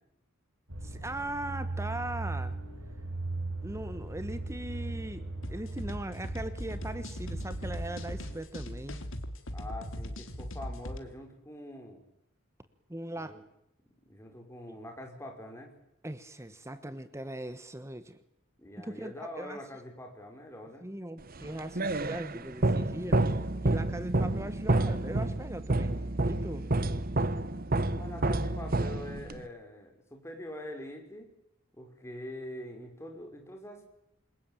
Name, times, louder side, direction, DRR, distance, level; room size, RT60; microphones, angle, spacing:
sound 1, 0.7-8.4, right 2 dB, 80° right, 7.9 m, -38 dB
voice 1, 0.8-2.6 3.6-9.0 12.9-13.4 14.7-14.8 16.0-18.2 18.8-19.6 20.8-26.7, right 1 dB, 15° right, 12 dB, 1.2 m, -40 dB
sound 2, 5.4-11.0, equal, 65° left, 2.8 m, -40 dB
voice 2, 9.5-12.0 13.2-13.4 14.0-15.7 18.6-20.9 27.8-31.3 31.7-33.9, left 1 dB, 15° left, 3 dB, 5.4 m, -44 dB
sound 3, 21.3-29.5, right 2 dB, 45° right, 1.1 m, -29 dB
27.5 x 22.0 x 9.1 m, 0.79 s
head